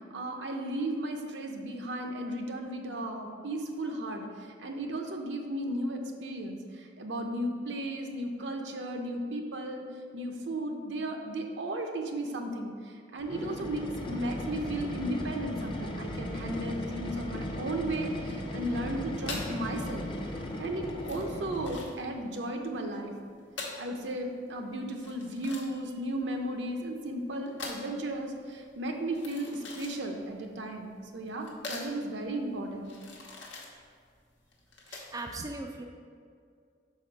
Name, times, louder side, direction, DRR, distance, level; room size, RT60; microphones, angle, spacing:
voice 1, 0.1-9.9 10.1-20.1 20.6-23.1 23.8-32.9, right 1 dB, 70° right, 3 dB, 0.7 m, -35 dB
sound 1, 13.2-22.0, left 1 dB, 25° left, 0.6 m, -37 dB
sound 2, 19.2-35.3, left 3 dB, 85° left, 1.1 m, -44 dB
voice 2, 34.9-35.8, right 2 dB, 20° right, 2 dB, 0.3 m, -39 dB
5.8 x 4.3 x 4.9 m, 2.2 s
head